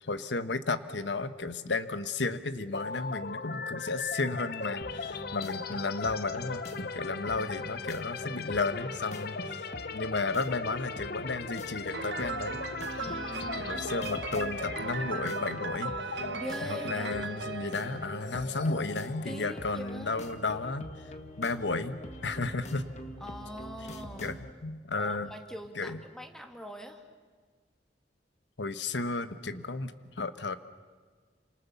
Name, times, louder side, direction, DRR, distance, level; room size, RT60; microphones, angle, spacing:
voice 1, 0.0-12.6 12.9-16.3 16.6-20.9 21.4-22.9 24.2-25.3 25.7-26.0 28.6-30.5, left 3 dB, 85° left, 11 dB, 1.2 m, -33 dB
sound 1, 2.7-20.5, left 4 dB, 60° left, 1.0 m, -39 dB
sound 2, 4.8-24.5, left 1 dB, 40° left, 1.8 m, -44 dB
Piano, 11.9-18.8, right 5 dB, 70° right, 1.1 m, -39 dB
voice 2, 13.0-13.8 14.9-15.1 16.3-17.3 19.2-20.3 23.2-24.3 25.0-27.0, equal, 5° left, 5 dB, 2.3 m, -43 dB
29.0 x 27.0 x 7.1 m, 1.6 s
head